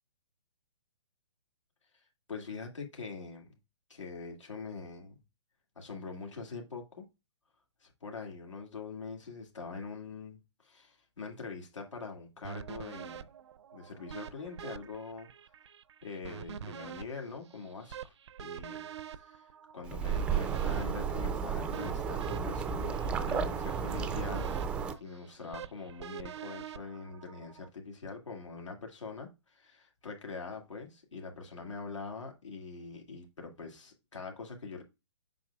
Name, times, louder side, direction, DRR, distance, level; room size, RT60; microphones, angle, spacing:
voice 1, 2.3-3.5 3.9-5.2 5.8-7.1 7.8-13.3 13.7-15.3 16.0-18.1 18.4-18.9 19.1-19.5 19.7-34.8, left 4 dB, 90° left, 2.2 m, -43 dB
sound 1, 12.4-27.7, right 9 dB, 65° right, 0.5 m, -46 dB
sound 2, 19.9-24.9, right 6 dB, 5° right, 0.3 m, -33 dB
7.7 x 5.7 x 2.3 m
hypercardioid pair, 145°, 15 cm